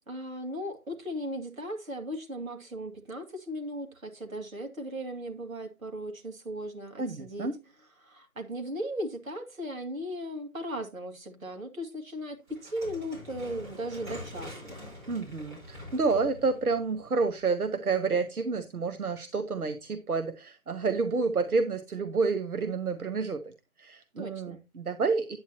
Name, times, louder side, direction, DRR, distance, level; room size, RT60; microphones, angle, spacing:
voice 1, 0.1-7.5 8.0-14.8 24.2-24.6, equal, 65° right, 2.3 m, -37 dB
voice 2, 7.0-7.5 15.1-23.5 23.8-25.4, right 4 dB, 80° right, 1.1 m, -29 dB
sound 1, 12.5-17.6, left 1 dB, 35° right, 4.5 m, -45 dB
9.4 x 8.5 x 2.9 m
figure-of-eight pair, 155°, 43 cm